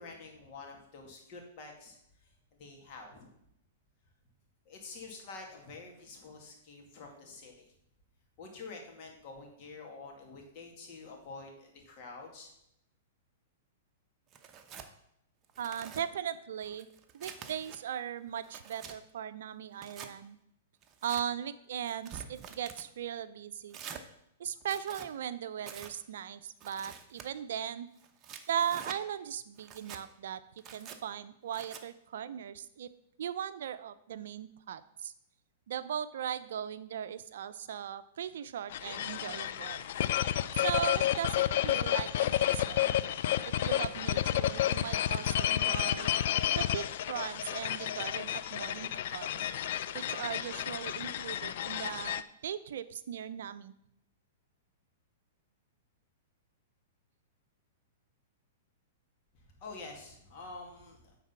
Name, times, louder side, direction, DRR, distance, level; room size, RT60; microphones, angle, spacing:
voice 1, 0.0-2.3 2.6-3.3 4.7-7.7 8.4-12.5 59.3-61.2, left 3 dB, 45° left, 1 dB, 2.3 m, -48 dB
Tearing, 14.3-14.9 15.4-16.0 16.6-17.8 18.3-19.0 19.7-20.1 20.8-21.2 21.9-22.9 23.7-24.0 24.6-25.1 25.6-25.9 26.6-27.3 28.0-29.0 29.6-30.0 30.6-31.0 31.5-31.8, right 7 dB, 30° right, 0.8 m, -47 dB
voice 2, 15.6-16.9 17.1-20.4 21.0-23.8 24.4-27.9 28.5-30.4 30.7-32.9 33.2-35.1 35.7-39.9 40.6-42.9 43.5-46.1 46.5-49.5 49.9-53.7, right 9 dB, 70° right, 13 dB, 0.5 m, -38 dB
sound 1, 38.7-52.2, left 11 dB, 60° left, 0.4 m, -31 dB
9.3 x 4.1 x 5.7 m, 0.77 s
hypercardioid pair, 120°, 0 cm